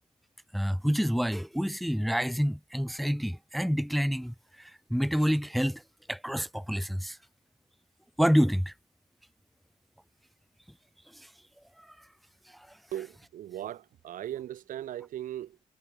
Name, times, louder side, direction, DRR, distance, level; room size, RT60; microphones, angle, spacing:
voice 1, 0.5-4.3 4.9-5.8 6.1-7.2 8.2-8.7, equal, ahead, 0.5 m, -27 dB
voice 2, 12.9-15.6, right 12 dB, 80° right, 0.8 m, -38 dB
cardioid pair, 70°, 14 cm